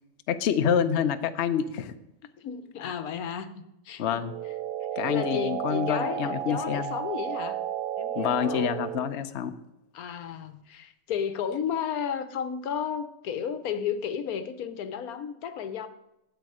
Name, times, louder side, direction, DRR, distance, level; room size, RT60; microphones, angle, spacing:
voice 1, 0.3-1.9 2.8-2.9 4.0-4.3 5.0-6.9 8.2-9.5, left 8 dB, 60° left, 9 dB, 0.8 m, -27 dB
voice 2, 2.4-4.2 5.1-7.6 8.0-8.7 9.9-15.9, left 8 dB, 75° left, 11 dB, 1.3 m, -33 dB
sound 1, 4.2-9.2, right 10 dB, 85° right, 0.5 m, -33 dB
12.0 x 8.1 x 4.8 m, 0.88 s
omnidirectional pair, 1.6 m